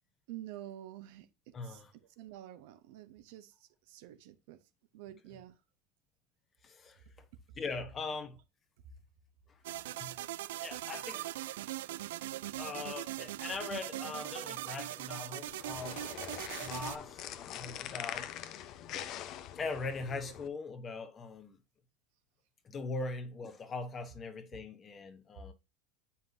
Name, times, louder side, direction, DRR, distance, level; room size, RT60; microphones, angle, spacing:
voice 1, 0.3-4.6 4.9-5.6 10.1-10.2, right 13 dB, 70° right, 0.9 m, -49 dB
voice 2, 1.5-1.9 6.6-7.0 7.5-8.4 9.5-9.6 10.0-10.2 10.6-11.2 12.6-16.1 16.6-18.3 19.5-21.6 22.6-25.5, left 3 dB, 25° left, 1.0 m, -41 dB
sound 1, 9.6-17.0, right 15 dB, 85° right, 0.3 m, -40 dB
sound 2, 15.5-20.5, left 11 dB, 45° left, 0.7 m, -43 dB
7.7 x 5.6 x 2.7 m
supercardioid pair, 130°, 0 cm